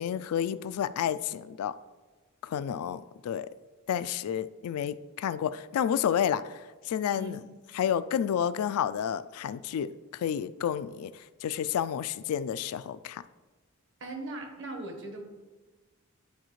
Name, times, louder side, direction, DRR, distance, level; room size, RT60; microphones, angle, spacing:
voice 1, 0.0-1.7 2.4-3.5 3.9-6.6 6.9-7.4 7.7-11.1 11.4-13.2, left 9 dB, 80° left, 16 dB, 0.3 m, -30 dB
voice 2, 14.0-15.2, right 1 dB, 60° right, 4 dB, 1.1 m, -39 dB
11.5 x 4.1 x 3.1 m, 1.3 s
head